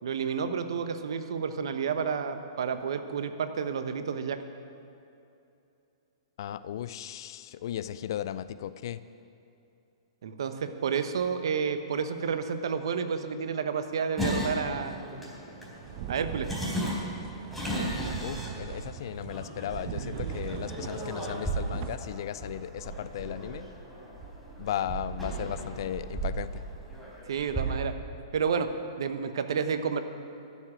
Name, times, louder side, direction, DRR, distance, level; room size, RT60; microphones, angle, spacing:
voice 1, 0.0-4.4 10.2-15.0 16.1-16.5 27.2-27.9 28.3-28.7 29.0-30.0, right 6 dB, 65° right, 9 dB, 1.0 m, -30 dB
voice 2, 6.4-9.0 18.2-23.7 24.6-26.6, left 10 dB, 55° left, 14 dB, 0.5 m, -36 dB
sound 1, 14.2-27.7, right 1 dB, ahead, 3.9 m, -36 dB
sound 2, 15.7-22.0, right 10 dB, 45° right, 0.7 m, -40 dB
13.0 x 7.3 x 9.7 m, 2.7 s
figure-of-eight pair, 115°, 3 cm